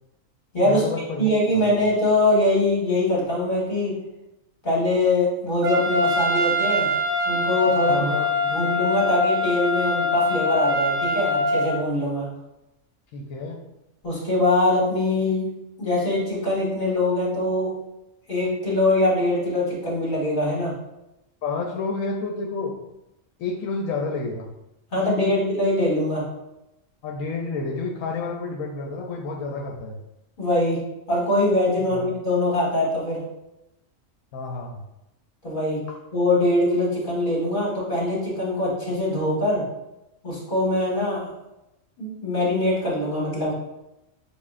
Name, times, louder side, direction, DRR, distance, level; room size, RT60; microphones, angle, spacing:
voice 1, 0.6-1.3 1.7-1.8 7.9-8.5 13.1-13.6 21.4-22.8 23.4-24.5 25.0-25.3 27.0-30.0 31.9-32.1 34.3-34.8, left 3 dB, 80° left, 0 dB, 1.0 m, -30 dB
voice 2, 1.2-3.9 4.6-6.9 7.3-8.2 8.5-12.3 14.0-15.5 15.8-17.7 18.3-20.7 24.9-26.3 30.4-30.8 31.1-33.2 35.4-35.8 36.1-39.6 40.2-41.3 42.0-43.5, left 1 dB, 35° left, -5 dB, 1.7 m, -23 dB
Trumpet, 5.6-11.7, left 2 dB, 35° right, 0.9 m, -23 dB
6.9 x 2.4 x 2.5 m, 0.92 s
omnidirectional pair, 1.4 m